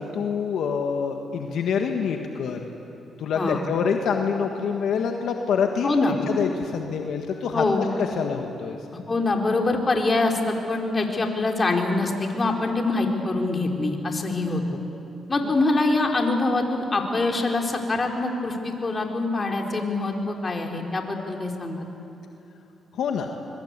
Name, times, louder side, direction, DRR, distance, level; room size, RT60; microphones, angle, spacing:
voice 1, 0.0-2.6 3.2-5.9 6.3-8.8 22.9-23.3, left 6 dB, 75° left, 3 dB, 1.6 m, -26 dB
voice 2, 5.8-6.2 7.5-7.8 9.1-14.6 15.3-21.9, left 2 dB, 35° left, 1 dB, 4.2 m, -24 dB
25.0 x 23.0 x 8.4 m, 2.8 s
supercardioid pair, 65°, 0 cm